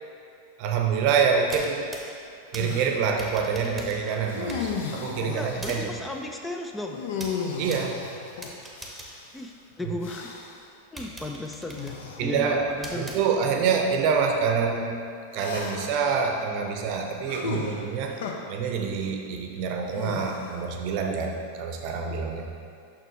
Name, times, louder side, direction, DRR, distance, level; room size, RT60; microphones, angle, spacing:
voice 1, 0.6-1.9 2.5-5.9 7.6-8.0 12.2-15.0 15.3-18.2 18.5-22.5, right 6 dB, 45° right, 3 dB, 0.7 m, -26 dB
sound 1, 1.4-10.1 10.5-10.6 11.0-13.7, right 1 dB, 5° right, 0.9 m, -44 dB
sound 2, 2.6-3.0 4.3-5.8 6.9-9.3 10.0-10.6 11.7-12.3 13.1-13.2 15.3-16.0 17.3-18.3 19.9-20.7, left 5 dB, 55° left, 0.6 m, -34 dB
voice 2, 5.1-7.0 9.3-10.3 10.9-13.2, left 1 dB, 10° left, 2 dB, 0.4 m, -35 dB
6.6 x 6.0 x 3.1 m, 2.4 s
figure-of-eight pair, 90°, 0 cm